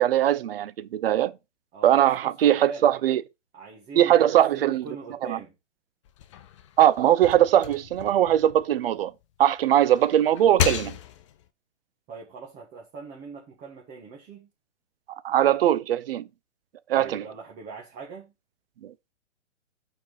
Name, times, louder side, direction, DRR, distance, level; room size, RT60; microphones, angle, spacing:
voice 1, 0.0-1.3 1.8-3.2 4.0-4.8 5.2-5.4 6.8-9.1 9.4-11.0 15.2-16.3 16.9-17.2 18.8-18.9, right 11 dB, 55° right, 0.6 m, -21 dB
voice 2, 1.7-2.9 3.5-5.5 12.1-14.5 16.9-18.3, right 4 dB, 20° right, 1.4 m, -42 dB
sound 1, 6.0-9.2 9.7-11.5, left 11 dB, 25° left, 0.5 m, -33 dB
6.3 x 4.5 x 4.9 m
hypercardioid pair, 130°, 36 cm